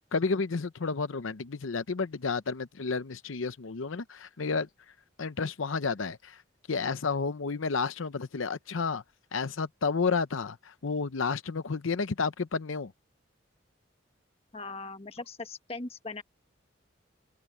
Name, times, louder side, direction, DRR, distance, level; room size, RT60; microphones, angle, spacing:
voice 1, 0.1-4.7 5.2-6.4 6.7-9.0 9.3-12.9, left 4 dB, 90° left, 0.7 m, -31 dB
voice 2, 14.5-16.2, left 3 dB, 30° left, 1.5 m, -39 dB
open air
head